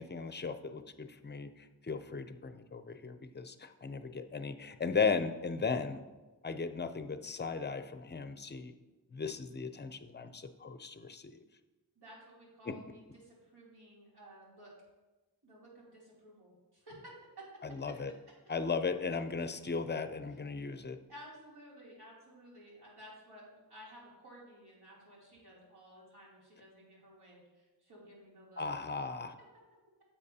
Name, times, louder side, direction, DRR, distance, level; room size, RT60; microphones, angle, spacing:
voice 1, 0.0-1.5 1.8-6.0 6.4-8.7 9.1-11.4 12.7-12.8 17.6-18.1 18.5-21.0 28.6-29.4, left 5 dB, 30° left, 10 dB, 0.5 m, -36 dB
voice 2, 12.0-14.7 15.4-17.1 21.1-28.7, equal, 90° right, -6 dB, 3.0 m, -55 dB
10.0 x 7.2 x 2.8 m, 1.2 s
wide cardioid pair, 110°, 38 cm